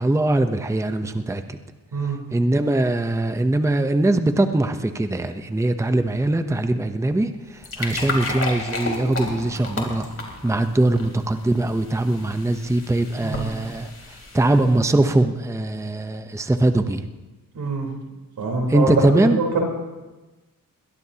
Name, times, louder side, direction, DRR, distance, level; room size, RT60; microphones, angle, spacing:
voice 1, 0.0-1.6 2.3-7.3 7.8-10.1 10.4-13.9 14.3-17.0 18.7-19.4, right 2 dB, 10° right, 8 dB, 0.7 m, -21 dB
sound 1, 7.4-14.9, left 3 dB, 40° left, 3.4 m, -33 dB
voice 2, 13.2-13.5 17.5-17.9 18.4-19.6, right 3 dB, 85° right, 0 dB, 3.9 m, -24 dB
22.0 x 18.0 x 2.9 m, 1.1 s
cardioid pair, 85°, 35 cm